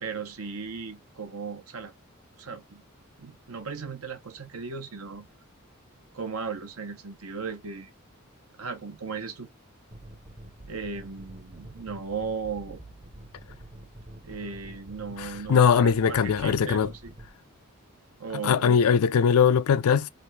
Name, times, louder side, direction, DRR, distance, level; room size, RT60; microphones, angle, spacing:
voice 1, 0.0-1.9 2.4-2.8 3.2-5.3 6.1-7.9 8.6-9.5 10.7-12.8 14.2-17.1 18.2-18.9, right 5 dB, 80° right, 1.0 m, -36 dB
sound 1, 9.9-17.3, right 1 dB, 30° right, 0.8 m, -47 dB
voice 2, 15.2-16.9 18.4-20.1, left 6 dB, 80° left, 0.4 m, -21 dB
3.4 x 2.6 x 4.6 m
head